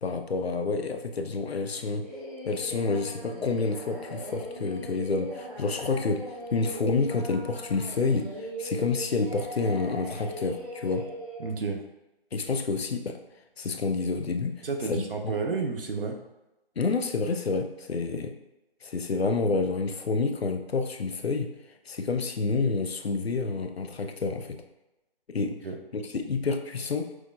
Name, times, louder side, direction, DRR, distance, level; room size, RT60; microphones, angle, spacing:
voice 1, 0.0-2.0 2.4-11.1 12.3-13.2 13.6-15.3 16.8-18.4 18.8-21.5 21.8-24.6 25.3-25.6 25.9-27.1, left 4 dB, 85° left, 6 dB, 0.5 m, -29 dB
Singing, 2.0-11.4, equal, 35° right, 1.2 m, -39 dB
voice 2, 11.4-11.9 14.6-16.2 25.6-25.8, right 4 dB, 65° right, 3 dB, 0.6 m, -31 dB
6.0 x 2.0 x 2.3 m, 0.98 s
figure-of-eight pair, 165°, 30 cm